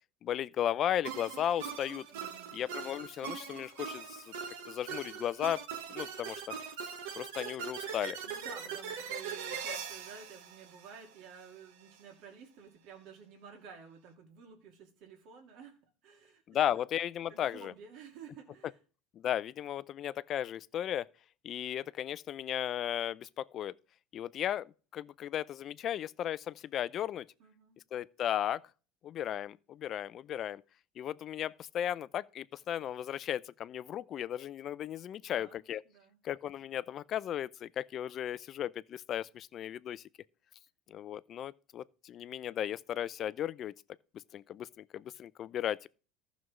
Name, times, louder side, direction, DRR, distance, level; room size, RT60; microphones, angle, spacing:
voice 1, 0.2-2.1 2.5-4.3 4.7-5.6 5.9-6.4 7.2-8.2 16.5-17.7 19.2-21.1 21.4-23.7 24.1-27.3 27.9-28.6 29.0-30.6 31.0-35.8 36.2-40.0 40.9-43.7 44.3-45.9, left 10 dB, 40° left, 0.4 m, -35 dB
sound 1, 1.0-11.4, right 7 dB, 85° right, 1.2 m, -41 dB
voice 2, 2.1-2.7 8.2-16.8 17.3-18.8 27.4-27.8 35.2-35.6 35.9-36.2, right 6 dB, 60° right, 2.1 m, -52 dB
14.5 x 6.1 x 3.1 m
supercardioid pair, 135°, 0 cm